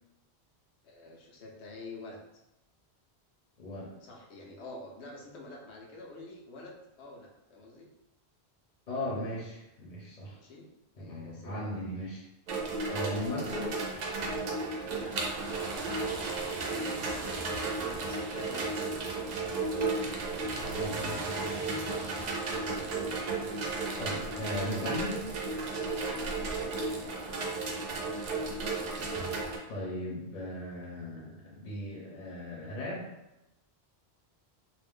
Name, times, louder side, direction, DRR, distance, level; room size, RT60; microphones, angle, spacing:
voice 1, 0.8-2.2 4.0-7.9 10.4-10.7 11.0-11.8 14.8-15.2 17.7-18.7 22.4-22.8, left 2 dB, 80° left, 0 dB, 0.9 m, -48 dB
voice 2, 3.6-4.0 8.9-10.4 11.0-12.2 12.9-13.8 20.7-21.0 23.7-25.2 29.7-33.1, left 1 dB, 45° left, -5 dB, 0.7 m, -37 dB
sound 1, 12.5-29.6, right 3 dB, 55° right, 0.5 m, -34 dB
2.5 x 2.1 x 3.4 m, 0.91 s
omnidirectional pair, 1.1 m